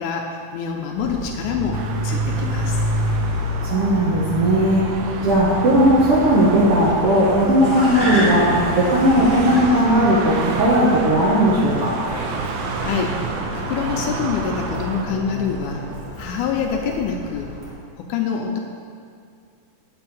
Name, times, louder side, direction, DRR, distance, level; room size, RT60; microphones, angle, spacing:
voice 1, 0.0-2.8 12.8-13.2 13.5-15.8 16.2-17.5 18.0-18.6, left 6 dB, 80° left, 2 dB, 1.9 m, -26 dB
Car, 1.0-17.7, equal, 30° right, 0.8 m, -28 dB
sound 1, 1.7-15.0, right 5 dB, 80° right, 2.0 m, -31 dB
voice 2, 3.6-4.8 5.2-8.5 8.7-11.9, equal, 65° right, -6 dB, 1.5 m, -17 dB
8.8 x 4.1 x 7.1 m, 2.3 s
omnidirectional pair, 3.8 m